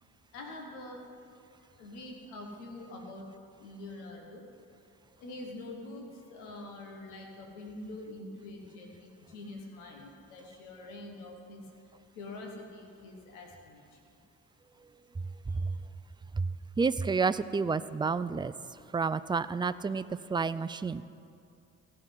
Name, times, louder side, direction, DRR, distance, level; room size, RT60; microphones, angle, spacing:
voice 1, 0.3-1.1 1.8-3.3 3.6-4.5 5.2-11.6 12.1-14.0 15.5-15.8, left 2 dB, 85° left, 1.3 m, -45 dB
voice 2, 16.8-18.5 18.9-20.0 20.3-21.0, right 4 dB, 10° right, 0.3 m, -29 dB
15.0 x 5.9 x 9.7 m
hypercardioid pair, 40°, 43 cm